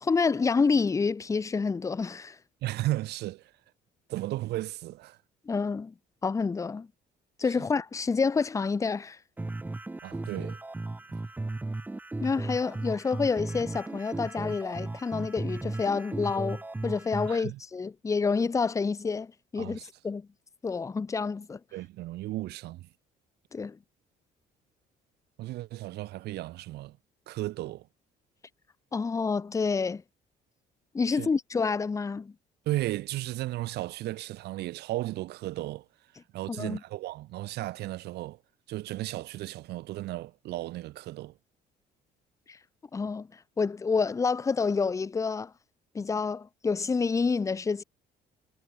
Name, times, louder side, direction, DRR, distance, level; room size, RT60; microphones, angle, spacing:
voice 1, 0.0-2.4 5.5-5.9 6.2-6.9 7.4-9.2 12.2-19.8 20.0-20.3 20.6-21.6 23.5-23.8 28.9-30.0 30.9-32.3 36.5-36.8 42.5-42.6 42.9-43.3 43.6-45.5 45.9-47.8, left 4 dB, 20° left, 0.6 m, -28 dB
voice 2, 2.6-3.5 4.1-5.2 10.0-10.6 17.3-17.6 19.6-19.9 21.7-22.9 25.4-27.0 27.3-27.9 31.2-31.3 32.6-35.8 36.3-38.4 38.7-41.3, right 16 dB, 75° right, 1.5 m, -34 dB
sound 1, 9.4-17.4, right 2 dB, 10° right, 0.8 m, -36 dB
cardioid pair, 110°, 17 cm